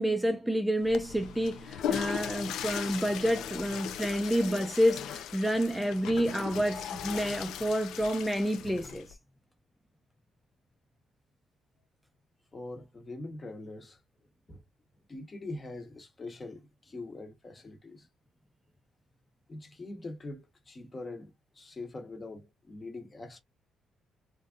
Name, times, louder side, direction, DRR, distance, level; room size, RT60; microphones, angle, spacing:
voice 1, 0.0-9.2, equal, 5° right, 0.4 m, -29 dB
Water / Toilet flush, 0.8-9.1, left 9 dB, 85° left, 0.4 m, -38 dB
voice 2, 12.5-14.0 14.5-14.6 15.1-18.1 19.5-23.4, left 2 dB, 30° left, 1.0 m, -43 dB
3.2 x 2.6 x 2.2 m
cardioid pair, 90°, 0 cm